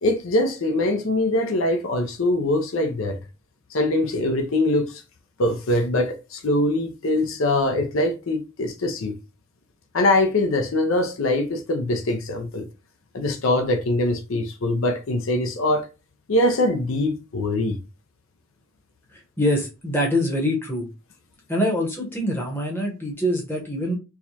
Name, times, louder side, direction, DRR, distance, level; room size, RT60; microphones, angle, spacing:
voice 1, 0.0-3.2 3.7-5.0 5.4-9.1 9.9-12.7 13.1-15.9 16.3-17.8, left 1 dB, 75° left, 0.6 m, -23 dB
voice 2, 19.1-20.9 21.5-24.0, equal, 10° left, 0.8 m, -24 dB
4.6 x 2.2 x 2.7 m
head